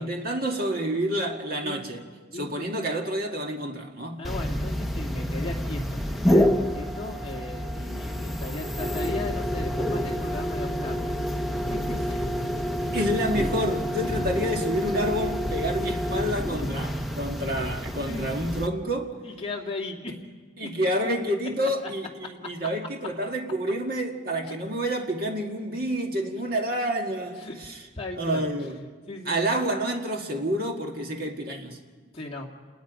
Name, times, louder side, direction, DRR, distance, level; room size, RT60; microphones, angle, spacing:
voice 1, 0.0-2.0 2.3-4.3 12.9-16.9 17.2-19.1 20.6-27.8 28.2-28.8 29.3-31.8, equal, 50° right, 1.9 m, -28 dB
voice 2, 2.3-2.7 4.2-11.3 12.1-12.2 12.6-12.9 14.1-14.5 18.0-18.3 19.2-20.2 20.6-20.7 24.5-24.6 27.4-27.5 27.9-28.5 29.1-29.4 32.1-32.5, left 2 dB, 30° left, 2.3 m, -36 dB
sound 1, 4.2-18.7, equal, ahead, 0.8 m, -28 dB
29.0 x 20.5 x 5.2 m
head